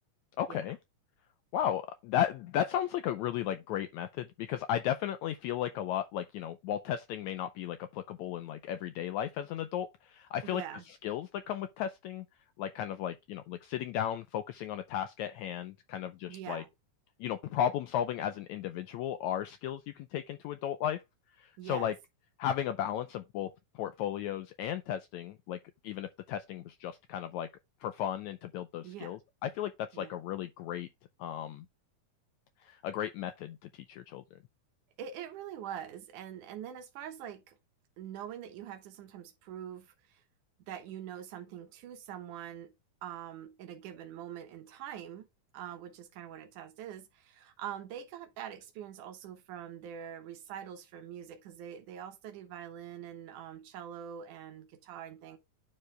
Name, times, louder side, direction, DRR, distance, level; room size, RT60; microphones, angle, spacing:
voice 1, 0.4-0.8 1.5-10.6 11.0-12.3 12.6-16.6 17.2-21.0 21.4-21.9 22.4-25.6 25.8-27.5 27.8-30.9 31.2-31.7 32.6-34.4, left 10 dB, 85° left, 1.6 m, -35 dB
voice 2, 10.4-10.8 16.3-16.7 21.6-21.9 28.8-29.2 29.9-30.1 35.0-37.6 38.0-40.2 40.7-42.7 43.0-45.3 45.5-55.4, right 9 dB, 75° right, 2.4 m, -44 dB
9.6 x 4.5 x 3.2 m
omnidirectional pair, 3.8 m